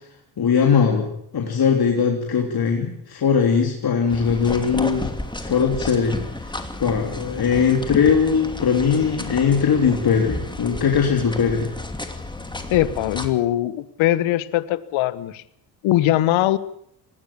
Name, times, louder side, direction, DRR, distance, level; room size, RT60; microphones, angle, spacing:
voice 1, 0.4-1.1 1.3-5.1 5.4-6.5 6.8-11.7, left 6 dB, 50° left, 2 dB, 3.3 m, -20 dB
sound 1, 4.1-13.3, left 1 dB, 10° left, 2.9 m, -32 dB
voice 2, 12.7-15.4 15.8-16.6, left 14 dB, 70° left, 16 dB, 1.3 m, -21 dB
19.5 x 16.5 x 8.6 m, 0.71 s
supercardioid pair, 60°, 49 cm